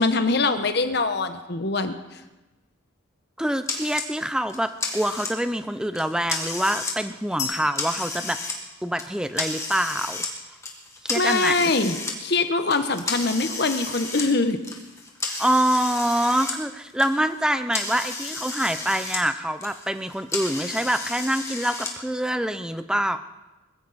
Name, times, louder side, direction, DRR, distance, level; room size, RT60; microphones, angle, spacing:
voice 1, 0.0-2.2 11.1-14.6, left 3 dB, 55° left, 8 dB, 1.1 m, -23 dB
voice 2, 3.4-8.4 8.8-10.2 11.0-11.7 15.4-23.2, right 1 dB, 5° right, 11 dB, 0.5 m, -25 dB
sound 1, 3.7-4.1 4.5-5.6 5.9-7.0 7.3-8.6 9.0-10.3 10.6-12.1 12.7-16.6 16.9-19.2 19.5-21.9, left 3 dB, 15° left, 1.8 m, -32 dB
sound 2, 7.4-9.3, left 6 dB, 35° left, 1.6 m, -36 dB
20.5 x 15.0 x 4.2 m, 1.1 s
head